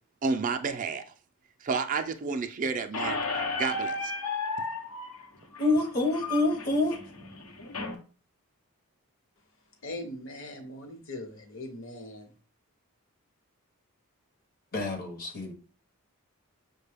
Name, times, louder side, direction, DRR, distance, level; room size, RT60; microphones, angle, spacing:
voice 1, 0.2-1.0 1.6-3.2 3.6-4.1, right 4 dB, 35° right, 0.4 m, -30 dB
Squeak, 2.9-7.9, left 3 dB, 90° left, 0.9 m, -34 dB
voice 2, 5.6-7.0 14.7-15.5, left 2 dB, 40° left, 0.7 m, -27 dB
voice 3, 9.8-12.3, left 1 dB, 60° left, 1.0 m, -40 dB
6.1 x 2.2 x 3.3 m
head